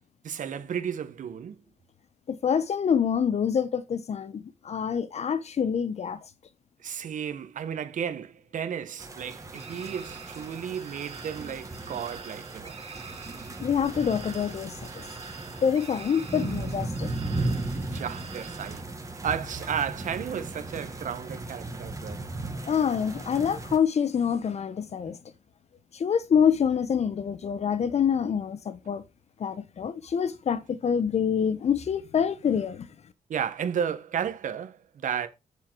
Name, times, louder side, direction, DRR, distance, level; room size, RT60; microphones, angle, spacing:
voice 1, 0.2-1.6 6.8-12.8 17.7-18.9 19.2-22.3 33.3-35.3, right 8 dB, 70° right, 1.4 m, -33 dB
voice 2, 2.3-6.2 13.6-15.1 15.6-17.1 22.7-25.2 25.9-29.0 29.4-32.9, left 7 dB, 50° left, 1.1 m, -26 dB
sound 1, 9.0-23.8, right 2 dB, 25° right, 1.8 m, -36 dB
sound 2, 9.5-18.8, right 5 dB, 45° right, 2.7 m, -47 dB
7.3 x 6.9 x 4.7 m
cardioid pair, 110°, 14 cm